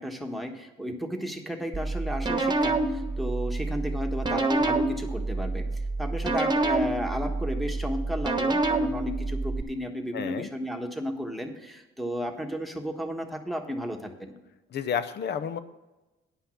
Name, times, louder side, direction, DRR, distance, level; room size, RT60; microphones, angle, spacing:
voice 1, 0.0-5.7 6.0-14.3, equal, ahead, 4 dB, 1.4 m, -33 dB
sound 1, 1.7-9.6, right 2 dB, 20° right, 1.2 m, -28 dB
voice 2, 10.1-10.5 14.7-15.6, left 7 dB, 60° left, 13 dB, 0.7 m, -30 dB
9.8 x 5.7 x 7.1 m, 1.1 s
cardioid pair, 90°, 20 cm